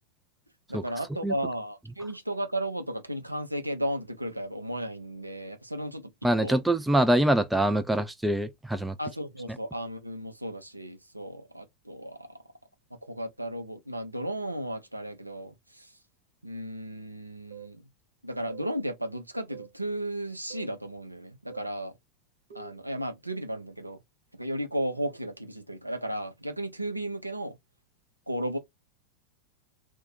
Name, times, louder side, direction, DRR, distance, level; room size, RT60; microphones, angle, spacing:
voice 1, 0.7-6.1 6.4-6.6 9.0-12.3 13.0-15.9 16.4-17.8 18.2-21.9 22.5-24.0 24.4-27.6 28.3-28.6, right 1 dB, 85° right, 0.5 m, -34 dB
voice 2, 6.2-9.0, right 1 dB, 5° right, 0.4 m, -24 dB
sound 1, 17.5-17.8 18.5-18.8 19.5-19.8 20.5-20.8 21.5-21.8 22.5-22.8, right 11 dB, 65° right, 1.1 m, -46 dB
2.5 x 2.2 x 3.9 m
figure-of-eight pair, 90°, 0 cm